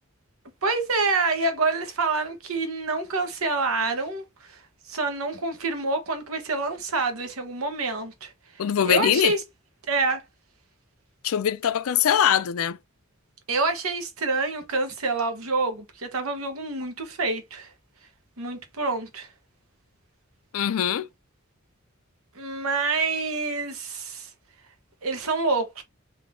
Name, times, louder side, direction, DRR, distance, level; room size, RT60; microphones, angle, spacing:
voice 1, 0.6-4.6 4.9-8.3 8.8-9.4 9.9-10.2 13.5-17.7 18.4-19.3 22.4-24.3 25.0-25.8, right 3 dB, 90° right, 1.2 m, -27 dB
voice 2, 8.6-9.3 11.2-12.8 20.5-21.1, left 9 dB, 85° left, 0.4 m, -22 dB
3.8 x 2.8 x 3.5 m
head